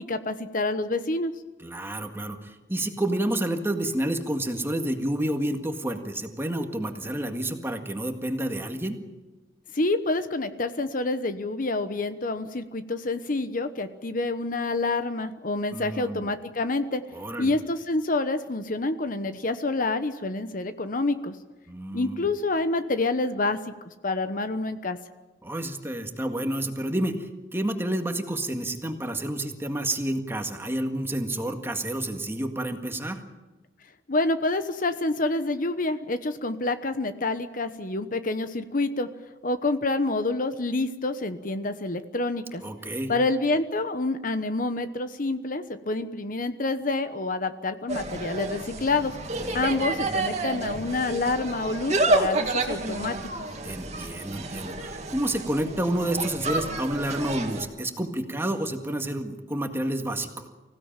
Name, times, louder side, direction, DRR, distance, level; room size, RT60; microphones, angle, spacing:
voice 1, 0.0-1.3 9.7-17.0 17.4-21.4 21.9-25.0 34.1-39.1 39.4-42.6 43.1-49.1 49.5-53.5, left 2 dB, 50° left, 10 dB, 1.1 m, -27 dB
voice 2, 1.6-9.0 15.7-16.3 17.1-17.5 21.7-22.2 25.4-33.2 42.6-43.1 49.4-50.0 53.6-60.5, right 1 dB, 15° right, 5 dB, 1.8 m, -29 dB
Insect, 47.9-57.7, right 2 dB, 40° right, 2.3 m, -30 dB
25.0 x 16.5 x 9.0 m, 1.1 s
head